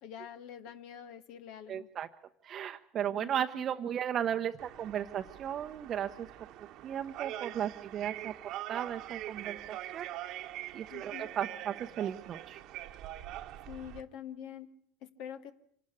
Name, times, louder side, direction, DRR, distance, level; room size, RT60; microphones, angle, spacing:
voice 1, 0.0-1.9 3.1-3.6 10.9-11.3 13.7-15.5, left 9 dB, 65° left, 10 dB, 1.5 m, -46 dB
voice 2, 1.7-2.1 2.4-6.3 6.8-8.3 8.7-10.1 10.7-12.6, right 9 dB, 40° right, 6 dB, 0.8 m, -35 dB
sound 1, 4.6-14.0, right 13 dB, 55° right, 1.2 m, -43 dB
25.5 x 12.0 x 9.7 m, 0.67 s
supercardioid pair, 105°, 0 cm